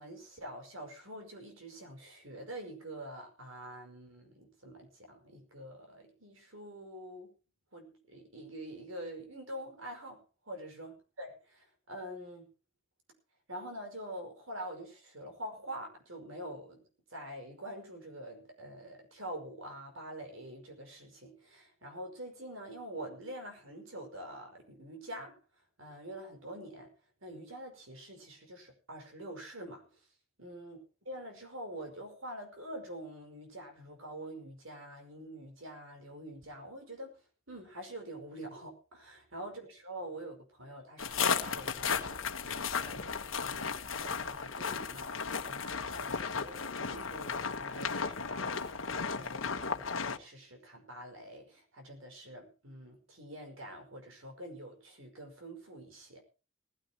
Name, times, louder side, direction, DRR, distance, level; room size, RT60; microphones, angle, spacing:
voice 1, 0.0-7.3 7.7-10.2 10.4-12.5 13.5-16.8 17.1-25.3 25.8-26.9 27.2-29.8 30.4-30.8 31.1-37.2 37.5-56.2, right 1 dB, 75° right, 4 dB, 5.5 m, -46 dB
sound 1, 41.0-50.2, left 5 dB, 70° left, 1.3 m, -35 dB
20.0 x 15.5 x 3.0 m, 0.34 s
head